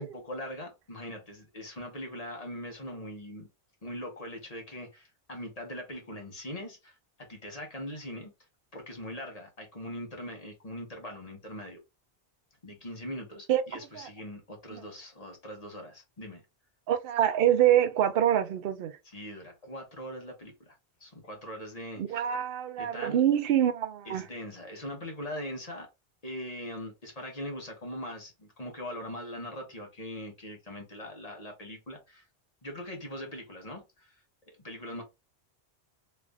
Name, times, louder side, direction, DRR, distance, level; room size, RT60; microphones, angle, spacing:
voice 1, 0.0-3.5 3.8-8.3 8.7-11.8 12.6-16.4 19.0-22.3 22.8-23.2 24.0-25.9 26.2-32.3 32.6-34.2 34.6-35.0, equal, 35° left, 1.1 m, -41 dB
voice 2, 16.9-19.0 22.0-24.3, right 11 dB, 60° right, 0.7 m, -25 dB
3.2 x 2.5 x 3.3 m
omnidirectional pair, 1.1 m